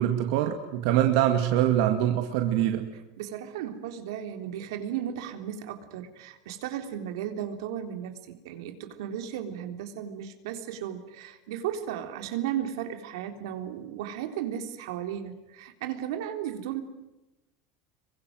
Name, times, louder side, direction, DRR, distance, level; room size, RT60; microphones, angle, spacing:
voice 1, 0.0-2.9, right 11 dB, 65° right, 5 dB, 2.2 m, -24 dB
voice 2, 3.2-16.8, right 10 dB, 85° right, 6 dB, 3.7 m, -35 dB
27.5 x 24.0 x 7.8 m, 0.98 s
supercardioid pair, 165°, 2 cm